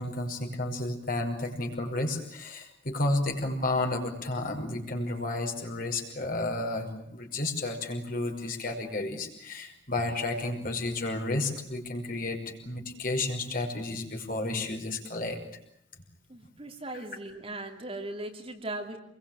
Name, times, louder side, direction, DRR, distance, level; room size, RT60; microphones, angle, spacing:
voice 1, 0.0-15.4, left 2 dB, 45° left, 2 dB, 5.5 m, -32 dB
voice 2, 16.3-19.0, right 2 dB, 30° right, 4 dB, 2.9 m, -38 dB
27.5 x 22.0 x 9.0 m, 0.74 s
head